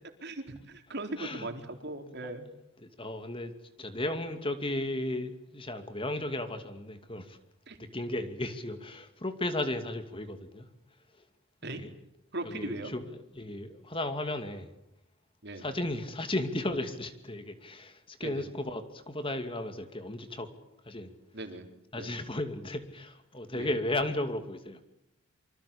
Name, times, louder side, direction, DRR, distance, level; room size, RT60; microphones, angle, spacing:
voice 1, 0.2-2.5 7.7-7.8 11.6-11.8 12.3-12.9 15.4-15.6 18.2-18.5 21.3-21.7 21.9-22.1 23.5-23.7, right 2 dB, 50° right, 5 dB, 4.1 m, -39 dB
voice 2, 1.2-1.5 2.8-7.4 7.8-10.7 11.6-11.9 12.4-13.0 13.3-14.7 15.6-20.5 20.8-21.1 21.9-24.8, left 1 dB, 25° left, 8 dB, 2.5 m, -35 dB
27.0 x 25.5 x 8.6 m, 0.84 s
head